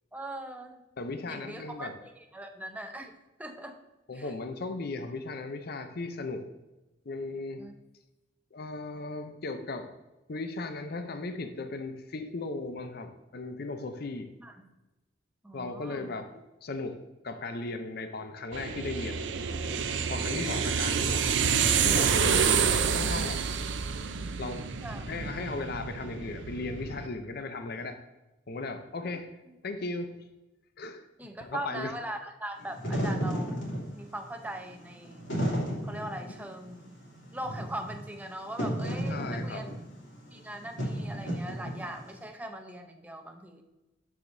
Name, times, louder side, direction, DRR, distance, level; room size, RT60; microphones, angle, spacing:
voice 1, 0.1-0.8 1.3-3.8 4.1-4.3 7.6-7.7 14.4-14.6 15.4-16.1 24.8-25.0 29.0-29.1 29.5-29.6 31.2-33.6 34.0-35.3 35.8-36.9 37.3-39.7 40.3-43.6, right 1 dB, 10° right, 4 dB, 0.7 m, -40 dB
voice 2, 1.0-1.9 4.1-6.4 7.1-7.6 8.5-9.9 10.3-14.3 15.5-16.2 16.6-17.0 17.2-19.3 20.1-22.6 22.9-23.4 24.4-24.6 25.1-28.0 28.5-29.3 29.6-30.1 30.8-31.1 31.4-31.9 39.1-39.7, left 3 dB, 55° left, 7 dB, 0.6 m, -36 dB
sound 1, 18.5-27.1, right 6 dB, 70° right, 0.5 m, -28 dB
Wind / Fire, 32.6-42.1, equal, 75° left, 2.8 m, -33 dB
13.0 x 4.9 x 2.6 m, 1.0 s
head